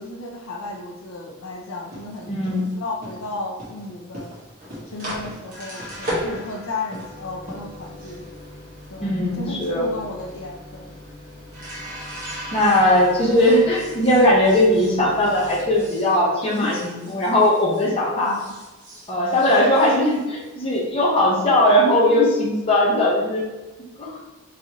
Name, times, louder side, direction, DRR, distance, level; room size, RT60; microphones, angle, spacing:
voice 1, 0.0-4.4 4.9-8.3 8.9-10.9 16.5-16.7 18.1-18.6, left 2 dB, 80° left, 1 dB, 0.6 m, -34 dB
sound 1, 1.7-17.9 18.2-20.8, equal, 40° right, 1.5 m, -37 dB
voice 2, 2.3-2.6 9.0-9.9 12.5-18.4 19.1-23.4 24.0-24.2, left 1 dB, 25° left, -5 dB, 1.1 m, -19 dB
4.0 x 3.9 x 3.0 m, 1.1 s
head